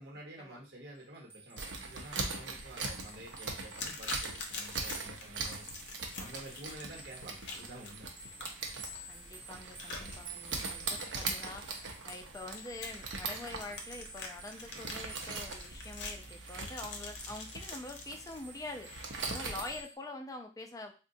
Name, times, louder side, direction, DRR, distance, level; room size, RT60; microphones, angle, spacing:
voice 1, 0.0-5.6 6.2-8.1, right 1 dB, 60° right, -2 dB, 1.0 m, -49 dB
sound 1, 1.0-20.0, right 2 dB, 30° right, 0.6 m, -52 dB
sound 2, 1.6-19.8, right 3 dB, 80° right, 0.6 m, -41 dB
sound 3, 3.7-18.4, left 3 dB, 65° left, 0.6 m, -46 dB
voice 2, 9.1-20.9, left 2 dB, 20° left, 5 dB, 0.4 m, -45 dB
3.8 x 2.1 x 2.6 m, 0.33 s
head